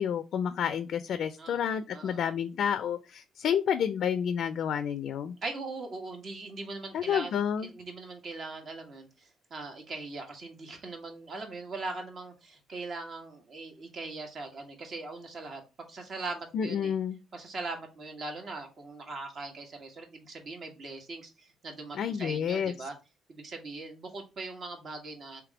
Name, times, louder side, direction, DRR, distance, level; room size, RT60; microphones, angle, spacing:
voice 1, 0.0-5.3 6.9-7.7 16.5-17.2 21.9-22.7, left 8 dB, 70° left, 11 dB, 0.4 m, -30 dB
voice 2, 5.4-7.3 7.6-15.6 15.9-16.9 17.3-22.9 23.3-25.4, right 3 dB, 55° right, 4 dB, 1.5 m, -40 dB
3.4 x 3.1 x 4.8 m, 0.28 s
cardioid pair, 90°, 0 cm